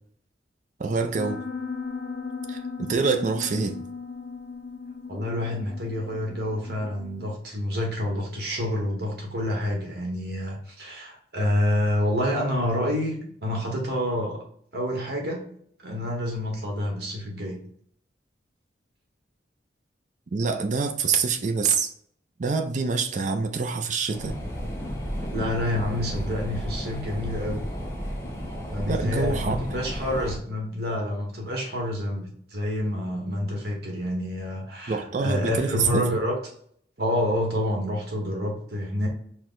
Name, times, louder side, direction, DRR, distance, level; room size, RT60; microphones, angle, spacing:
voice 1, 0.8-1.4 2.5-3.8 20.3-21.9 22.4-24.3 28.9-29.6 34.9-36.1, right 4 dB, 40° right, 6 dB, 0.4 m, -26 dB
Piano, 1.2-7.4, left 4 dB, 60° left, 0.5 m, -37 dB
voice 2, 5.1-14.4 14.7-15.4 15.8-17.6 25.3-27.6 28.7-36.4 37.0-39.1, left 1 dB, 55° right, 0 dB, 1.3 m, -28 dB
sound 1, 24.1-30.4, equal, 15° left, 0.6 m, -32 dB
4.6 x 2.2 x 3.8 m, 0.62 s
head